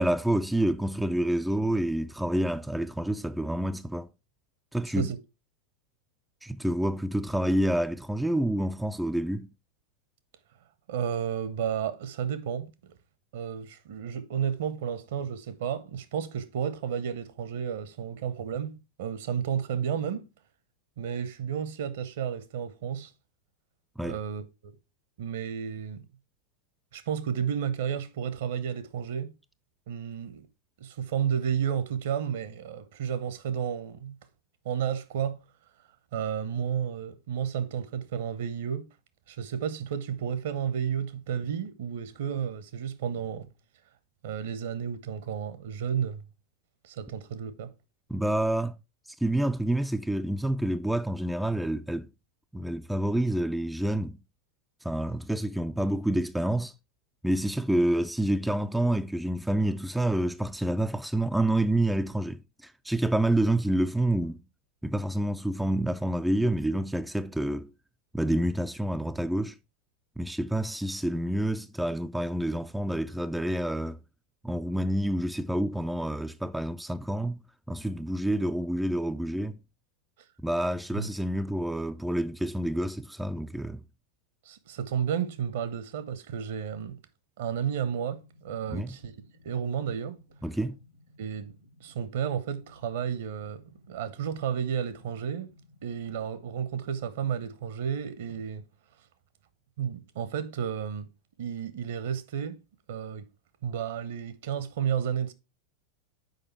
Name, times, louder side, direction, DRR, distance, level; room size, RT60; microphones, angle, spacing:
voice 1, 0.0-4.1 4.7-5.1 6.4-9.5 24.0-24.2 48.1-48.8 49.2-52.1 52.5-54.2 54.8-56.7 57.2-64.4 64.8-67.7 68.1-69.6 70.2-74.0 74.4-77.4 77.7-79.6 80.4-83.8 88.7-89.0 90.4-90.8, right 1 dB, 5° right, 0.3 m, -28 dB
voice 2, 10.9-12.9 13.3-20.2 21.0-23.1 24.0-24.7 25.2-26.0 26.9-29.3 29.9-30.5 30.8-34.2 34.6-35.4 36.1-38.8 39.3-43.5 44.2-46.2 46.8-47.7 80.9-81.1 84.4-87.0 87.4-89.1 89.4-90.2 91.2-91.5 91.8-93.6 93.9-95.5 95.8-98.6 99.8-101.1 101.4-102.6 102.9-103.2 103.6-105.3, right 8 dB, 55° right, 0.8 m, -32 dB
sound 1, 87.4-97.4, left 1 dB, 90° right, 1.3 m, -59 dB
6.6 x 5.1 x 4.3 m
figure-of-eight pair, 90°, 0 cm